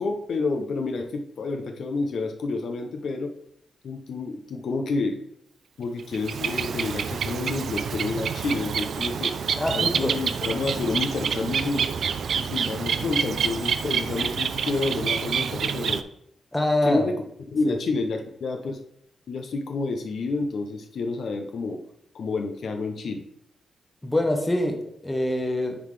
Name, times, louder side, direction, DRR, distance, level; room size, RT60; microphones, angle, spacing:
voice 1, 0.0-3.3 3.8-5.2 5.8-9.3 9.7-11.8 12.4-16.0 16.8-17.1 17.5-18.8 19.3-21.8 22.1-23.2, left 3 dB, 55° left, 5 dB, 0.6 m, -29 dB
Bird, 6.0-16.0, right 7 dB, 60° right, 0.3 m, -27 dB
voice 2, 9.5-10.2 16.5-17.0 17.6-17.7 24.0-25.8, left 1 dB, 10° left, 3 dB, 0.8 m, -25 dB
9.4 x 3.7 x 3.2 m, 0.74 s
wide cardioid pair, 160°, 0 cm